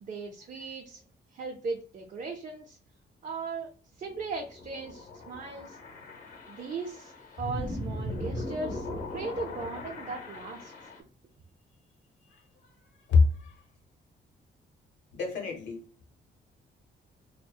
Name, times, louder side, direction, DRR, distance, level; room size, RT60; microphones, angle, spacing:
voice 1, 0.0-1.0 1.3-2.8 3.2-3.7 4.0-5.8 6.5-7.1 7.4-8.9 9.1-10.7, right 4 dB, 40° right, 0.4 m, -37 dB
sound 1, 4.1-11.0, left 1 dB, 45° left, 0.7 m, -39 dB
voice 2, 12.3-12.7 13.1-13.6 15.1-15.9, left 4 dB, 80° left, 0.9 m, -26 dB
2.6 x 2.1 x 2.3 m
cardioid pair, 125°, 19 cm